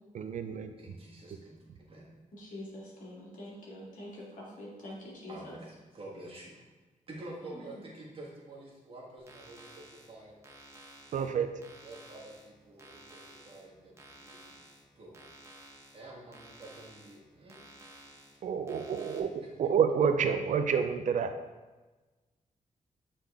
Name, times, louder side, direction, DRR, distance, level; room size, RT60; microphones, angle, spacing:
voice 1, 0.1-1.0 11.1-11.5 18.4-21.3, right 7 dB, 65° right, 8 dB, 0.4 m, -29 dB
voice 2, 0.8-1.5 1.9-2.1 5.3-6.6 7.1-10.3 11.8-14.5 14.9-15.3 15.9-17.7, right 2 dB, 40° right, -3 dB, 1.5 m, -48 dB
voice 3, 2.3-5.6 7.4-7.7, left 1 dB, 70° left, -5 dB, 2.1 m, -45 dB
sound 1, 9.2-19.2, right 1 dB, 20° right, 0.9 m, -54 dB
7.9 x 3.9 x 3.5 m, 1.2 s
wide cardioid pair, 165°, 14 cm